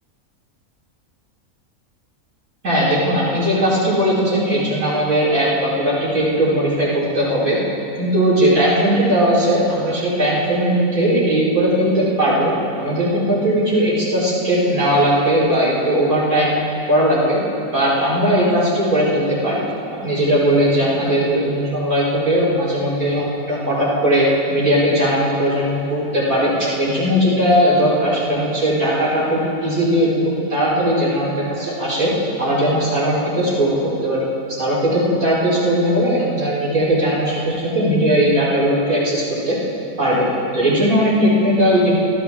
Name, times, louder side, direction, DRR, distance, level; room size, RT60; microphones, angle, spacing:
voice 1, 2.6-7.6 8.0-12.5 12.8-16.5 16.9-17.4 17.7-19.6 20.0-32.1 32.4-39.6 40.0-40.3 40.5-41.9, equal, 90° right, -9 dB, 5.4 m, -18 dB
25.0 x 13.0 x 3.7 m, 2.7 s
omnidirectional pair, 1.4 m